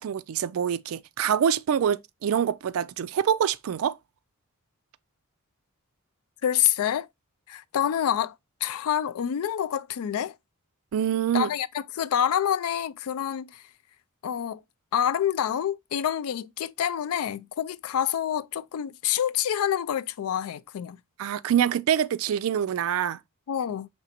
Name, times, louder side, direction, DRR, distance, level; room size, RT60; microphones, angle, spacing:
voice 1, 0.0-4.0 10.9-11.5 21.2-23.2, right 9 dB, 70° right, 0.3 m, -25 dB
voice 2, 6.4-7.1 7.5-8.3 8.6-10.3 11.3-13.6 14.2-14.6 14.9-21.0 23.5-23.9, left 9 dB, 80° left, 0.3 m, -27 dB
5.1 x 3.3 x 2.7 m
head